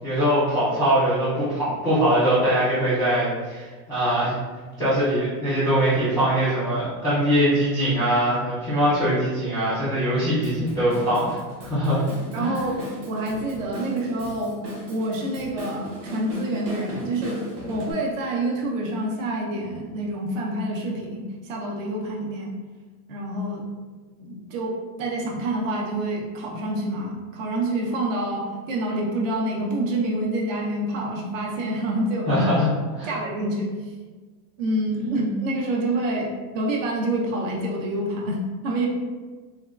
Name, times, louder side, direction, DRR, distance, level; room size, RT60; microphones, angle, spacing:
voice 1, 0.0-4.4 4.8-12.0 12.3-12.6 32.3-32.7 33.0-33.1, equal, 10° left, -14 dB, 0.3 m, -22 dB
Drum kit / Drum, 10.4-17.9, equal, 35° right, 1.0 m, -37 dB
voice 2, 12.3-12.8 13.1-14.6 14.9-17.4 17.7-22.5 23.1-23.7 24.2-32.3 32.5-32.7 33.0-33.7 34.6-38.9, right 1 dB, 50° right, -1 dB, 0.7 m, -27 dB
3.5 x 2.2 x 2.3 m, 1.4 s
supercardioid pair, 155°, 49 cm